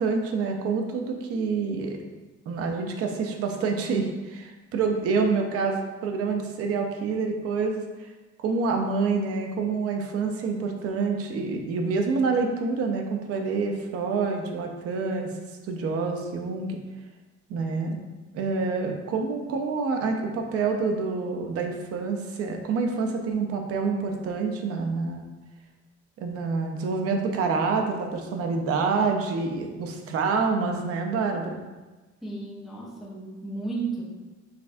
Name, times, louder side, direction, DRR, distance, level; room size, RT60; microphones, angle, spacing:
voice 1, 0.0-2.0 2.5-8.1 8.4-15.3 15.6-16.8 17.5-18.0 18.3-25.3 26.2-31.6, right 4 dB, 50° right, 3 dB, 0.6 m, -27 dB
voice 2, 32.2-34.0, right 3 dB, ahead, -6 dB, 0.6 m, -33 dB
5.7 x 3.3 x 2.6 m, 1.2 s
cardioid pair, 175°, 29 cm